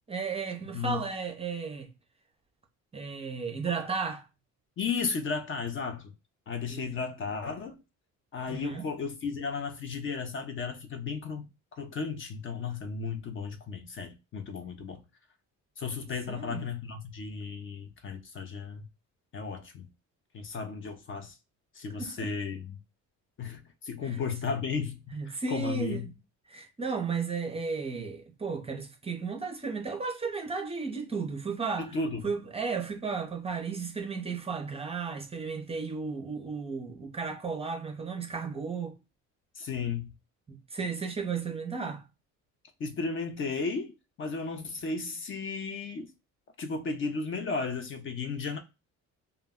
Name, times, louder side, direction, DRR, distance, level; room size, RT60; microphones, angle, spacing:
voice 1, 0.1-1.9 2.9-4.2 6.7-7.1 8.5-8.8 16.3-16.6 22.0-22.3 24.0-24.2 25.1-26.1 26.5-32.0 32.2-39.0 40.5-42.0, right 5 dB, 20° right, 0.5 m, -34 dB
voice 2, 4.8-6.1 6.5-7.7 8.3-11.5 11.8-15.0 15.8-18.8 19.3-19.9 20.3-21.4 21.7-22.8 23.4-26.1 31.8-32.2 39.5-40.1 42.8-46.1 46.6-48.6, left 5 dB, 40° left, 0.5 m, -34 dB
2.1 x 2.1 x 3.4 m
cardioid pair, 130°, 32 cm